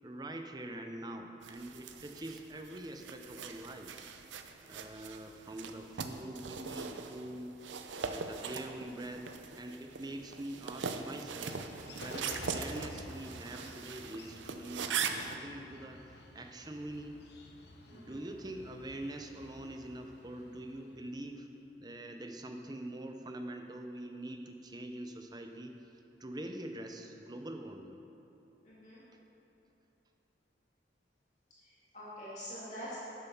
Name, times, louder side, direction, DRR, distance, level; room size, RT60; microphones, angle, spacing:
voice 1, 0.0-4.0 4.6-7.6 8.0-11.6 11.9-16.0 16.3-17.2 17.9-21.5 21.8-25.8 26.2-28.0, right 1 dB, 20° right, 5 dB, 0.6 m, -44 dB
sound 1, 1.4-15.4, right 5 dB, 80° right, 0.6 m, -41 dB
Bird, 9.9-21.4, left 2 dB, 60° left, 0.8 m, -52 dB
voice 2, 17.8-18.3 28.6-29.0 31.6-33.0, equal, 40° left, -10 dB, 2.4 m, -46 dB
10.5 x 7.1 x 5.5 m, 2.9 s
head